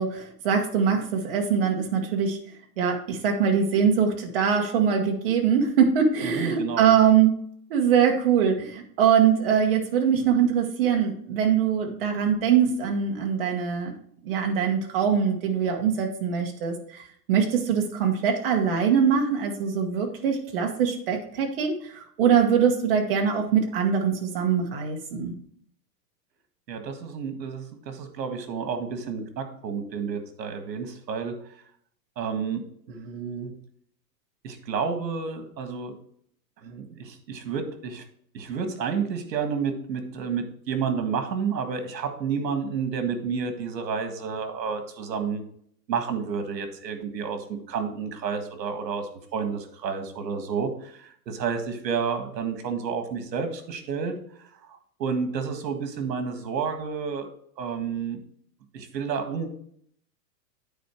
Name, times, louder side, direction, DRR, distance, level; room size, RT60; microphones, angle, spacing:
voice 1, 0.0-2.4 2.8-7.3 7.7-13.9 14.2-25.3, right 7 dB, 35° right, 2 dB, 1.2 m, -23 dB
voice 2, 6.2-7.0 26.7-31.3 32.2-32.6 32.9-33.5 34.4-35.9 36.6-38.0 38.3-45.4 45.9-54.1 54.4-57.3 57.6-58.2 58.7-59.5, right 6 dB, 80° right, 7 dB, 1.8 m, -30 dB
9.3 x 4.5 x 4.5 m, 0.64 s
supercardioid pair, 180°, 49 cm